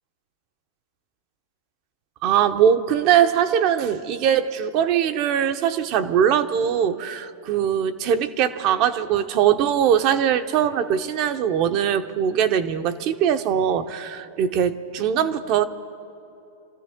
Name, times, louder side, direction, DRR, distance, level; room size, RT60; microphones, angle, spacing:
voice 1, 2.2-15.6, right 9 dB, 45° right, 9 dB, 0.9 m, -21 dB
27.5 x 14.5 x 3.7 m, 2.8 s
hypercardioid pair, 110°, 0 cm